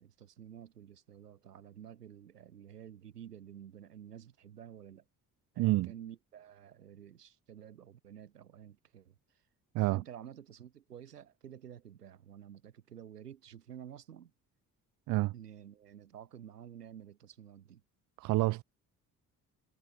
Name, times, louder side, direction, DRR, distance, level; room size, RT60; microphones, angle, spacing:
voice 1, 0.0-5.0 5.5-9.4 9.8-14.3 15.3-17.8, right 9 dB, 85° right, 1.3 m, -51 dB
voice 2, 5.6-5.9 9.7-10.0 15.1-15.3 18.2-18.6, right 20 dB, 40° right, 0.4 m, -28 dB
figure-of-eight pair, 40°, 47 cm